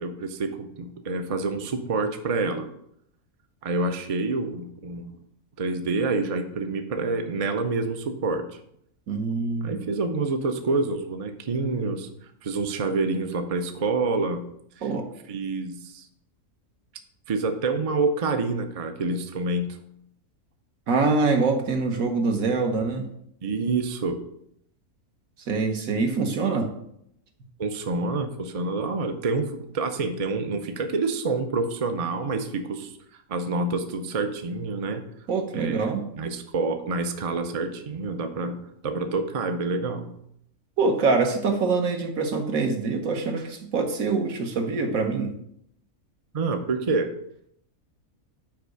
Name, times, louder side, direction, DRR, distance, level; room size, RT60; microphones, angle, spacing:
voice 1, 0.0-2.7 3.6-5.1 5.6-8.5 9.6-12.1 12.4-14.4 15.3-16.1 17.3-19.7 23.4-24.2 27.6-32.9 33.3-35.1 35.5-35.9 36.2-40.1 46.3-47.1, right 3 dB, 45° right, 7 dB, 0.4 m, -27 dB
voice 2, 9.1-9.9 14.8-15.1 20.9-23.1 25.5-26.7 35.3-36.0 40.8-45.3, right 4 dB, 70° right, 4 dB, 1.5 m, -24 dB
5.8 x 4.7 x 6.3 m, 0.73 s
omnidirectional pair, 1.5 m